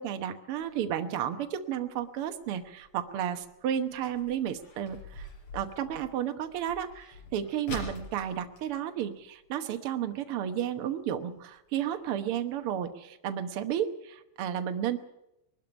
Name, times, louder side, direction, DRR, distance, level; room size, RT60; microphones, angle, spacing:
voice 1, 0.0-5.3 5.5-15.0, right 10 dB, 90° right, 7 dB, 1.2 m, -32 dB
sound 1, 0.5-9.8 10.1-10.2 10.5-10.8 11.4-11.5 12.0-12.1 12.4-12.5 12.8-12.9, left 2 dB, 50° left, 5.3 m, -46 dB
22.5 x 12.5 x 9.8 m, 0.87 s
omnidirectional pair, 4.2 m